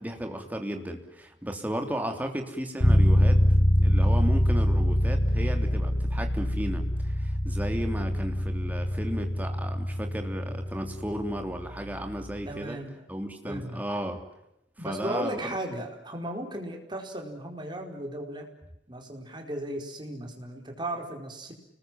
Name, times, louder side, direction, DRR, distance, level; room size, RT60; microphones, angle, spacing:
voice 1, 0.0-3.4 3.8-12.8 13.1-14.2 14.8-15.5, equal, 10° right, 5 dB, 3.1 m, -34 dB
sound 1, 2.8-12.5, equal, 60° left, 3.6 m, -25 dB
voice 2, 12.4-13.0 13.4-13.8 14.8-18.5 18.9-21.5, right 1 dB, 25° right, 3 dB, 4.6 m, -36 dB
30.0 x 20.5 x 7.6 m, 0.84 s
head